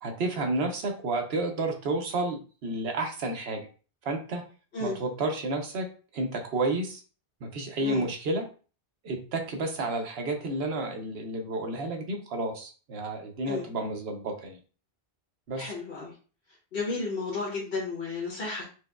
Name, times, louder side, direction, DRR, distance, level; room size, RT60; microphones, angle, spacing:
voice 1, 0.0-3.6 4.0-4.4 4.8-5.9 6.1-7.0 7.4-8.4 9.0-14.6 15.5-15.7, right 2 dB, 75° right, 3 dB, 1.0 m, -31 dB
voice 2, 15.6-16.1 16.7-18.6, left 3 dB, 65° left, -6 dB, 1.3 m, -32 dB
4.5 x 2.2 x 2.2 m, 0.37 s
omnidirectional pair, 1.1 m